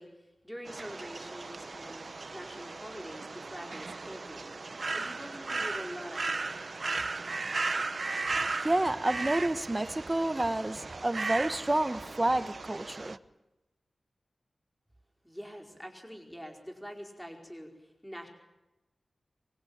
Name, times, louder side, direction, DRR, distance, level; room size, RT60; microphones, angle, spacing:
voice 1, 0.0-2.0 2.3-6.9 15.2-18.3, equal, 5° left, 2 dB, 4.8 m, -45 dB
sound 1, 0.7-13.2, right 3 dB, 50° right, 0.8 m, -36 dB
voice 2, 8.3-13.2, right 1 dB, 20° right, 11 dB, 1.3 m, -29 dB
24.0 x 21.0 x 8.8 m, 0.99 s
wide cardioid pair, 95°, 0 cm